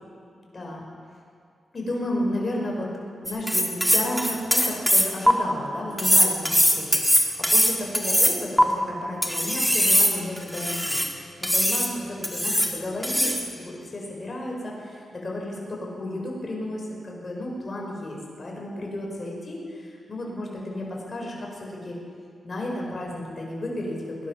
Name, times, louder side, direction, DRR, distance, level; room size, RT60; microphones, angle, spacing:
voice 1, 0.5-0.9 1.7-2.9 3.2-22.0 22.4-24.3, left 1 dB, 40° left, -2 dB, 5.0 m, -33 dB
sound 1, 3.3-5.3 6.0-8.6 9.2-11.1 11.4-11.9 12.2-12.7 13.0-13.5, equal, ahead, 1.8 m, -21 dB
20.5 x 11.0 x 6.1 m, 2.3 s
cardioid pair, 75°, 0 cm